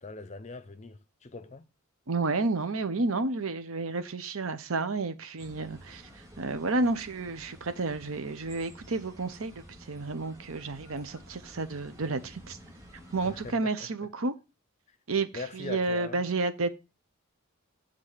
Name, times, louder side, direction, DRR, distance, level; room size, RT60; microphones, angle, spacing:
voice 1, 0.0-1.7 13.2-13.9 14.9-15.0 15.3-16.2, left 3 dB, 30° left, 0.6 m, -41 dB
voice 2, 2.1-9.5 9.9-12.6 13.1-14.3 15.1-16.7, right 3 dB, 75° right, 0.9 m, -31 dB
sound 1, 5.4-13.5, equal, 15° right, 2.1 m, -51 dB
7.5 x 3.7 x 6.6 m
head